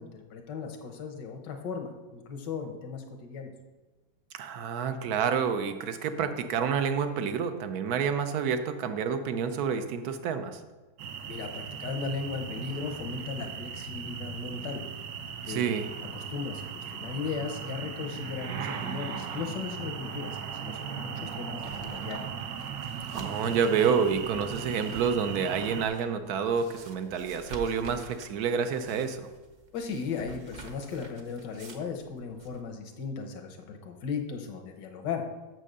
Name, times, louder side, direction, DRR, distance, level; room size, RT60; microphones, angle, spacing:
voice 1, 0.0-3.5 11.3-14.8 15.4-15.7 16.1-22.3 29.7-35.2, left 5 dB, 80° left, 4 dB, 1.6 m, -37 dB
voice 2, 4.3-10.6 15.5-15.9 23.1-29.3, right 6 dB, 65° right, 9 dB, 1.1 m, -28 dB
sound 1, 11.0-25.9, right 7 dB, 80° right, 1.4 m, -38 dB
sound 2, 21.6-32.6, right 2 dB, 40° right, 0.7 m, -50 dB
6.7 x 6.3 x 6.6 m, 1.2 s
omnidirectional pair, 1.9 m